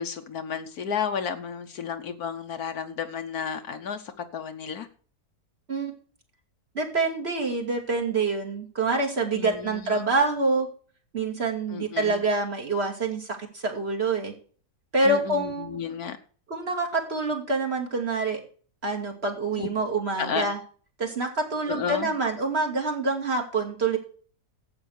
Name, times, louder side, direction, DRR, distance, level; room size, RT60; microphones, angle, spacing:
voice 1, 0.0-4.9 9.3-10.1 11.7-12.2 15.0-16.2 19.6-19.7 20.2-20.5 21.7-22.1, left 7 dB, 70° left, 7 dB, 1.4 m, -32 dB
voice 2, 6.7-10.7 11.1-14.3 14.9-15.8 16.5-18.4 18.8-20.6 21.0-24.0, right 3 dB, 40° right, 1 dB, 2.8 m, -26 dB
11.0 x 8.5 x 6.5 m, 0.43 s
omnidirectional pair, 1.7 m